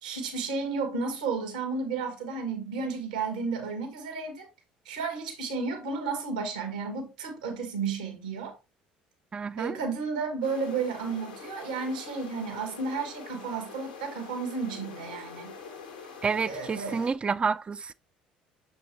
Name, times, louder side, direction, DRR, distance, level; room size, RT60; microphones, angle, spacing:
voice 1, 0.0-4.5 4.8-8.5 9.6-15.5 16.4-17.1, right 4 dB, 75° right, 1.6 m, -32 dB
voice 2, 9.3-9.8 16.2-17.9, right 5 dB, 25° right, 0.4 m, -29 dB
sound 1, 10.4-17.1, left 5 dB, 85° left, 1.3 m, -45 dB
6.6 x 4.5 x 3.1 m
figure-of-eight pair, 60°, 4 cm